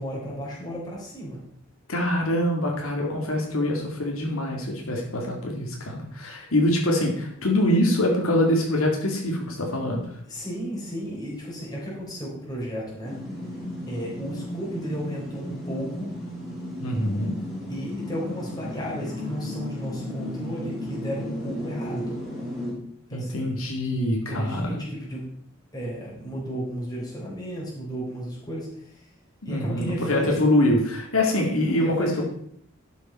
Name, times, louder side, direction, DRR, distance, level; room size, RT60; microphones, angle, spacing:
voice 1, 0.0-1.4 10.3-13.1 13.9-16.1 17.7-22.1 23.1-23.5 24.3-25.2 25.7-29.1 29.4-30.5 31.4-32.2, equal, 20° left, -5 dB, 3.9 m, -34 dB
voice 2, 1.9-10.1 16.8-17.4 23.1-24.8 29.4-32.2, left 1 dB, 80° left, 0 dB, 2.3 m, -24 dB
sound 1, 13.0-22.7, left 1 dB, ahead, 3.5 m, -34 dB
12.0 x 7.2 x 4.4 m, 0.65 s
head